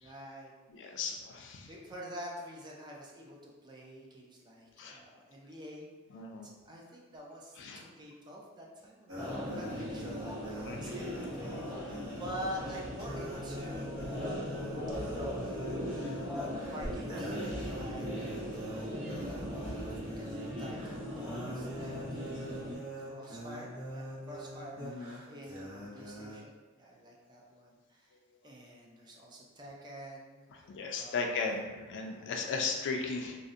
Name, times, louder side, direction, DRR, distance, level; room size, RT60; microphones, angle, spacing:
voice 1, 0.0-0.5 0.8-1.0 1.7-5.9 6.4-14.1 15.1-16.0 16.7-17.4 17.7-19.2 20.0-20.3 20.6-22.3 22.6-22.7 22.9-28.1 28.4-31.2 32.0-32.5, equal, 20° right, -3 dB, 0.4 m, -47 dB
voice 2, 0.7-1.7 4.8-5.0 6.1-6.5 7.6-7.8 10.7-10.9 16.0-16.3 19.9-20.0 24.8-25.2 30.5-33.4, left 4 dB, 55° left, 2 dB, 0.3 m, -37 dB
sound 1, 9.1-26.4, equal, 70° right, 0.8 m, -43 dB
sound 2, 9.2-22.8, equal, 55° right, 1.1 m, -39 dB
2.6 x 2.0 x 2.4 m, 1.3 s
head